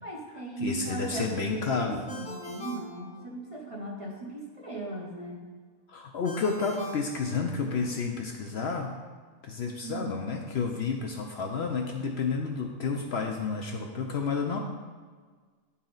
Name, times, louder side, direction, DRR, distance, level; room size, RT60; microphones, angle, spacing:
voice 1, 0.0-5.4 9.8-10.2, right 2 dB, 30° right, -2 dB, 0.7 m, -38 dB
voice 2, 0.6-2.0 5.9-8.9 9.4-14.6, left 4 dB, 60° left, 2 dB, 0.8 m, -30 dB
Ringtone, 2.1-3.7 6.2-7.9, left 2 dB, 5° left, 0.7 m, -43 dB
9.6 x 4.2 x 3.9 m, 1.5 s
omnidirectional pair, 1.4 m